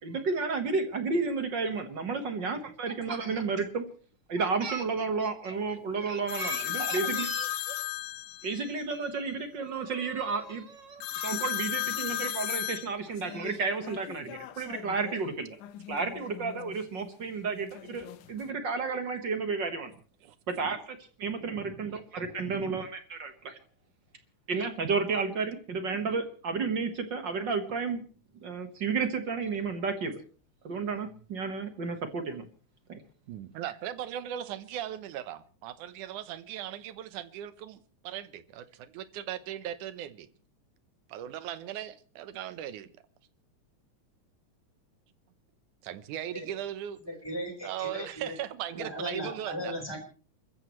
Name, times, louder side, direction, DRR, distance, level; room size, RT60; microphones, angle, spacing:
voice 1, 0.0-3.8 4.3-7.7 8.4-15.6 15.9-19.9 20.5-23.6 24.5-28.0 28.4-30.2 30.6-32.5 32.9-33.0, right 4 dB, 45° right, 1.7 m, -32 dB
sound 1, 6.3-8.7 11.0-15.2 15.6-16.7 17.6-18.5, left 14 dB, 90° left, 2.4 m, -35 dB
voice 2, 33.3-40.3 41.1-42.9 45.8-47.0 47.6-50.0, right 11 dB, 90° right, 2.5 m, -38 dB
voice 3, 47.0-48.3 48.7-50.0, equal, 5° left, 4.2 m, -37 dB
29.0 x 14.0 x 3.1 m
omnidirectional pair, 3.4 m